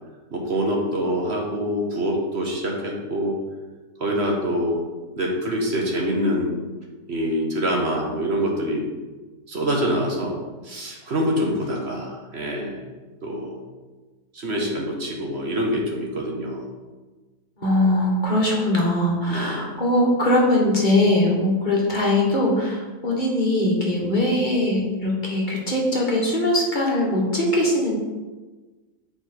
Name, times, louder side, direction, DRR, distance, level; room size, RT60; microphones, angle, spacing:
voice 1, 0.3-3.4 4.0-4.8 5.2-6.6 7.1-8.8 9.5-10.4 10.6-12.8 13.2-13.6 14.3-16.7 19.3-19.7, equal, 50° right, -1 dB, 1.4 m, -25 dB
voice 2, 17.6-28.0, left 1 dB, 35° left, -3 dB, 1.5 m, -21 dB
8.6 x 4.8 x 4.4 m, 1.3 s
omnidirectional pair, 1.4 m